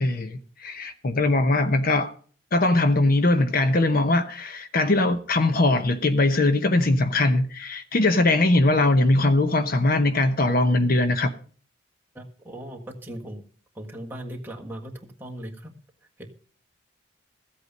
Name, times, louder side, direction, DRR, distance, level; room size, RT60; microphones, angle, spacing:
voice 1, 0.0-2.1 2.5-11.3, left 2 dB, 45° left, 0.8 m, -21 dB
voice 2, 12.1-13.4 13.8-14.9 15.2-15.7 16.2-16.3, right 1 dB, 10° right, 1.6 m, -38 dB
14.5 x 8.2 x 5.2 m
head